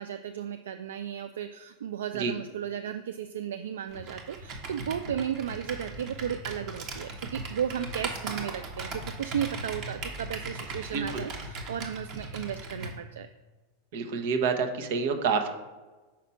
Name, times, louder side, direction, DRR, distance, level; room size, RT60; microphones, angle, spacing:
voice 1, 0.0-13.3, right 9 dB, 85° right, 9 dB, 0.3 m, -34 dB
Computer keyboard, 3.9-13.0, right 3 dB, 50° right, 1.3 m, -38 dB
voice 2, 13.9-15.5, right 5 dB, 65° right, 6 dB, 1.0 m, -28 dB
6.0 x 4.3 x 5.6 m, 1.2 s
hypercardioid pair, 110°, 0 cm